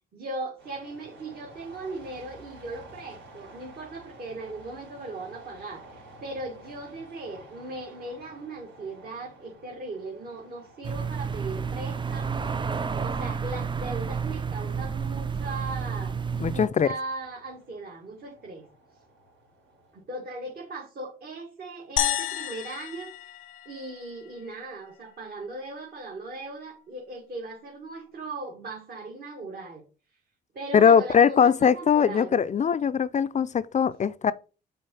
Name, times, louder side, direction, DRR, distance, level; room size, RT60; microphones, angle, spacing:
voice 1, 0.1-12.6 13.0-16.2 16.5-18.7 19.9-23.1 23.7-29.8 30.5-32.4, right 2 dB, 50° right, 1.9 m, -38 dB
sound 1, 0.6-20.0, right 1 dB, 75° right, 3.0 m, -52 dB
sound 2, 10.8-16.7, right 6 dB, 25° right, 0.5 m, -30 dB
voice 2, 16.4-16.9 30.7-34.3, left 7 dB, 35° left, 0.4 m, -21 dB
sound 3, 22.0-24.4, left 11 dB, 90° left, 0.7 m, -31 dB
5.5 x 4.0 x 5.4 m
cardioid pair, 90°, 20 cm